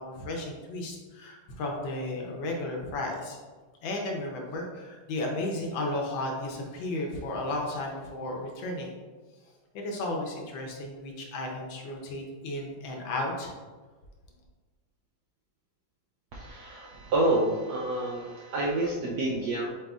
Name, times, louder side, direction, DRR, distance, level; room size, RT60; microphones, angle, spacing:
voice 1, 0.0-3.4 3.8-8.9 9.7-13.5, left 2 dB, 70° left, 0 dB, 1.4 m, -34 dB
voice 2, 16.3-19.7, right 2 dB, 75° right, -3 dB, 0.9 m, -28 dB
7.4 x 3.0 x 2.4 m, 1.4 s
omnidirectional pair, 2.3 m